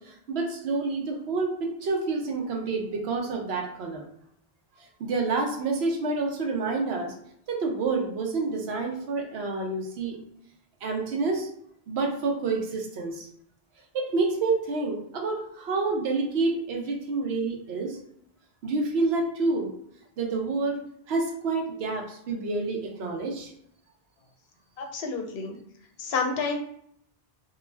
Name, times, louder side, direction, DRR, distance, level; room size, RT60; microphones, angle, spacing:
voice 1, 0.0-4.0 5.0-7.1 7.5-10.2 10.8-11.5 11.9-13.3 13.9-18.0 18.6-19.7 20.2-20.8 21.1-23.5, right 3 dB, 90° right, 2 dB, 0.9 m, -28 dB
voice 2, 24.8-25.5 26.0-26.6, left 4 dB, 85° left, 3 dB, 0.8 m, -29 dB
2.3 x 2.2 x 3.2 m, 0.69 s
omnidirectional pair, 1.0 m